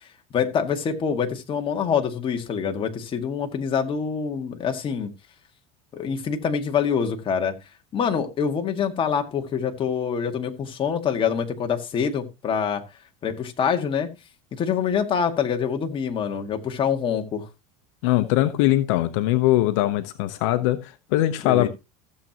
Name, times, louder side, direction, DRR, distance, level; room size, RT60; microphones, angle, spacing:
voice 1, 0.3-5.1 5.9-7.5 7.9-12.8 13.2-14.1 14.6-17.5 21.4-21.7, left 7 dB, 35° left, 2.0 m, -25 dB
voice 2, 18.0-21.7, left 15 dB, 75° left, 1.0 m, -21 dB
15.5 x 7.6 x 3.0 m
supercardioid pair, 120°, 16 cm